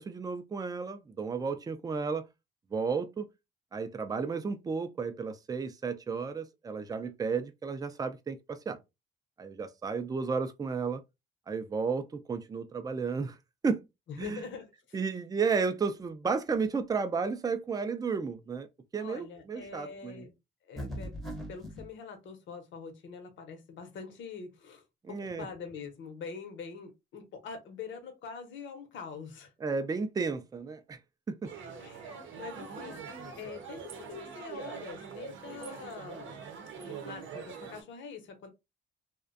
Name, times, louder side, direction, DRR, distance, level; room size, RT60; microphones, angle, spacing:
voice 1, 0.0-2.3 2.7-3.3 3.7-8.8 9.4-11.0 11.5-13.4 13.6-13.8 14.2-14.4 14.9-18.7 18.9-20.2 25.0-25.5 29.6-31.0 31.3-31.5, right 5 dB, 20° right, 0.4 m, -33 dB
voice 2, 14.1-15.0 19.0-20.3 20.6-21.2 21.5-29.5 31.8-33.0 33.4-36.4 36.8-38.5, left 5 dB, 70° left, 0.8 m, -44 dB
sound 1, 20.8-21.9, equal, ahead, 0.7 m, -39 dB
sound 2, 31.4-37.8, right 6 dB, 75° right, 0.7 m, -43 dB
2.4 x 2.1 x 2.4 m
cardioid pair, 90°, 20 cm